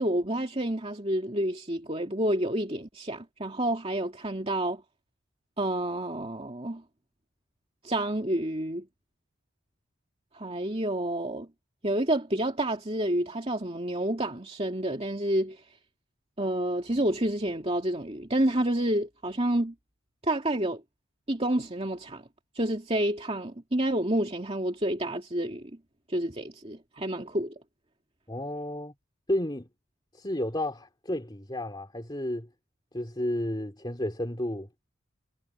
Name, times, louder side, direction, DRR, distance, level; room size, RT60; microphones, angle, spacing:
voice 1, 0.0-4.8 5.6-6.8 7.8-8.9 10.3-11.5 11.8-15.6 16.4-19.7 20.2-20.8 21.3-22.2 22.5-25.7 26.1-27.5, right 1 dB, 25° right, 2.6 m, -29 dB
voice 2, 28.3-28.9 29.3-29.7 30.2-32.5 32.9-34.7, left 1 dB, 20° left, 2.7 m, -32 dB
head